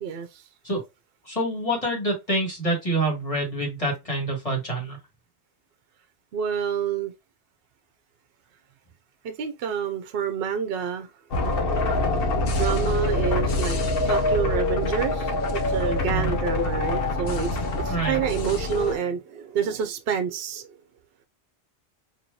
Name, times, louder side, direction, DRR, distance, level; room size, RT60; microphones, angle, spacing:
voice 1, 0.0-0.4 6.3-7.1 9.2-11.1 12.5-13.8 14.0-17.6 17.8-20.7, right 7 dB, 65° right, 0.7 m, -28 dB
voice 2, 1.3-5.0 16.1-16.4 17.9-18.2, right 1 dB, 30° left, 2.2 m, -26 dB
sound 1, 11.3-18.9, left 2 dB, 60° left, 1.0 m, -25 dB
4.6 x 2.8 x 2.7 m
omnidirectional pair, 1.1 m